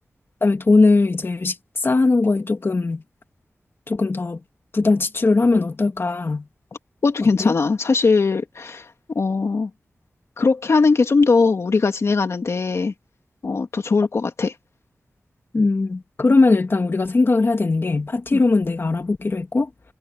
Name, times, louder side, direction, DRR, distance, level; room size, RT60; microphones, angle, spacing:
voice 1, 0.4-3.0 3.9-4.4 4.7-6.5 7.2-7.5 15.5-19.7, left 3 dB, 50° left, 2.3 m, -19 dB
voice 2, 7.0-8.9 9.1-9.7 10.4-12.9 13.4-14.5 18.3-18.4, left 4 dB, 70° left, 2.4 m, -20 dB
wide cardioid pair, 65°, 5 cm